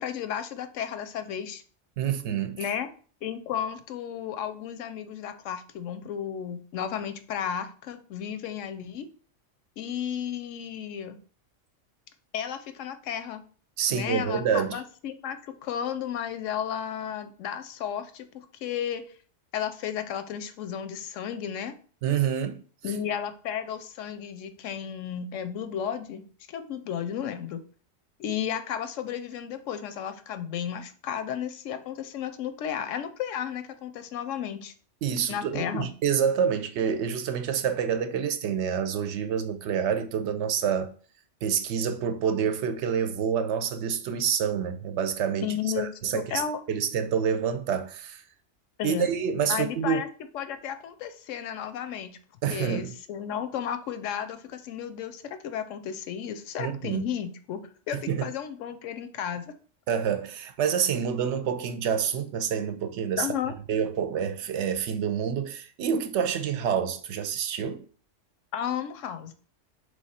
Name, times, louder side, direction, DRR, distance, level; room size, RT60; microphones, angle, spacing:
voice 1, 0.0-1.6 2.5-2.9 3.2-9.1 9.8-11.2 12.3-13.4 13.9-19.0 19.5-21.7 22.8-27.6 28.2-34.7 35.3-35.9 45.4-45.9 46.1-46.6 48.8-49.1 49.5-50.1 50.3-52.2 52.5-59.5 63.2-63.5 68.5-69.3, left 9 dB, 85° left, 0.9 m, -33 dB
voice 2, 2.0-2.7 13.8-14.8 22.0-22.6 35.0-40.9 41.4-45.5 45.8-48.2 48.8-50.0 52.4-52.9 56.6-57.1 57.9-58.3 59.9-63.3 63.7-67.9, right 7 dB, 70° right, 0.8 m, -27 dB
3.6 x 3.2 x 4.1 m
omnidirectional pair, 1.3 m